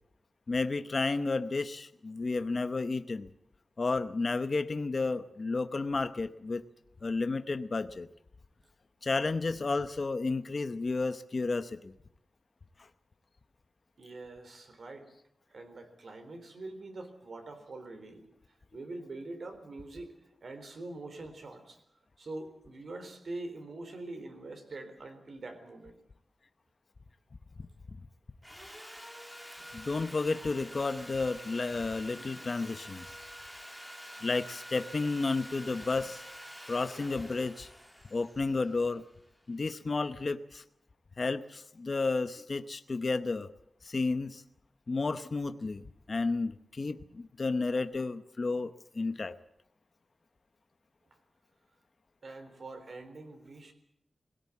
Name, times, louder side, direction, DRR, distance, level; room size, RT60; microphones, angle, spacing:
voice 1, 0.5-3.3 3.8-6.6 7.0-8.1 9.0-11.9 29.7-33.1 34.2-36.3 36.7-37.7 38.1-39.0 39.5-40.6 41.2-43.5 43.8-44.4 44.9-49.3, left 3 dB, 40° left, 10 dB, 0.9 m, -32 dB
voice 2, 14.0-15.1 15.5-18.3 18.7-20.1 20.4-21.8 22.2-26.0 52.2-53.7, right 2 dB, 60° right, 6 dB, 3.8 m, -44 dB
Sawing, 28.4-39.5, equal, ahead, 2.1 m, -47 dB
21.0 x 17.5 x 8.4 m, 0.76 s
wide cardioid pair, 140°, 0 cm